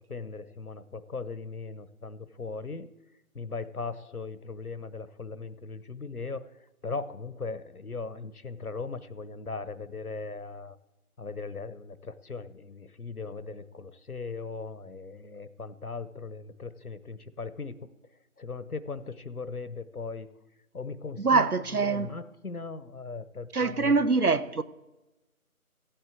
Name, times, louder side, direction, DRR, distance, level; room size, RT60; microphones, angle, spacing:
voice 1, 0.1-2.9 3.3-10.8 11.2-17.9 18.4-20.3 20.7-24.0, left 4 dB, 75° left, 1.1 m, -38 dB
voice 2, 21.2-22.1 23.5-24.6, right 4 dB, 75° right, 1.0 m, -24 dB
15.0 x 8.1 x 7.8 m
figure-of-eight pair, 165°, 45 cm